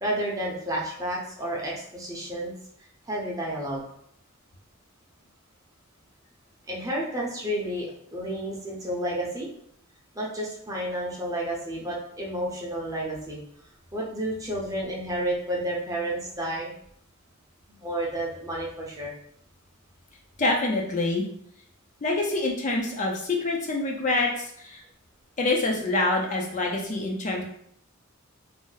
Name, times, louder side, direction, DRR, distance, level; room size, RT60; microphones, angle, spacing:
voice 1, 0.0-2.5 3.1-3.8 6.7-9.5 10.2-13.4 13.9-16.7 17.8-19.1 26.7-26.8, right 1 dB, 15° right, -4 dB, 0.7 m, -31 dB
voice 2, 20.4-21.3 22.0-24.8 25.4-27.4, left 2 dB, 35° left, -1 dB, 0.4 m, -26 dB
2.6 x 2.1 x 3.8 m, 0.68 s
head